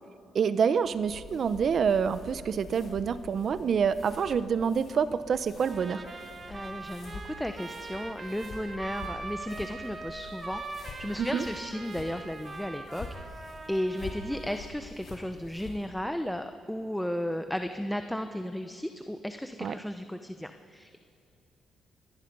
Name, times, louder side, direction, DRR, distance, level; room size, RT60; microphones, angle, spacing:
voice 1, 0.3-6.0 11.2-11.4 19.6-19.7, right 6 dB, 55° right, 14 dB, 0.8 m, -27 dB
Walking on grass (slowly), 0.8-15.9, left 3 dB, 55° left, 5.0 m, -47 dB
Trumpet, 5.6-14.7, right 3 dB, 35° right, 1.8 m, -42 dB
voice 2, 6.5-21.0, equal, 5° left, 7 dB, 0.8 m, -35 dB
25.5 x 19.0 x 5.4 m, 2.4 s
cardioid pair, 90°, 0 cm